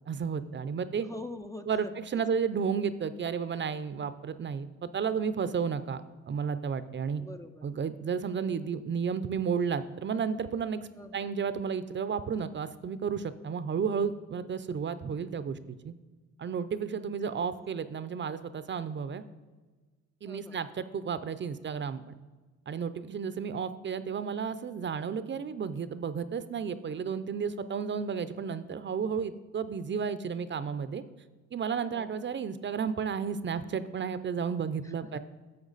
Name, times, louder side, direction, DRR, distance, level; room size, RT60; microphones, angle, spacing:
voice 1, 0.1-1.1 1.7-7.2 7.6-15.9 16.4-19.2 20.2-22.0 22.7-31.0 31.5-35.2, right 6 dB, 40° right, 13 dB, 0.5 m, -32 dB
voice 2, 1.0-2.3 7.2-7.7 11.0-11.3 20.2-20.6 31.9-32.3 34.8-35.2, left 2 dB, 10° left, 7 dB, 0.4 m, -45 dB
11.0 x 7.1 x 4.0 m, 1.3 s
cardioid pair, 90°, 30 cm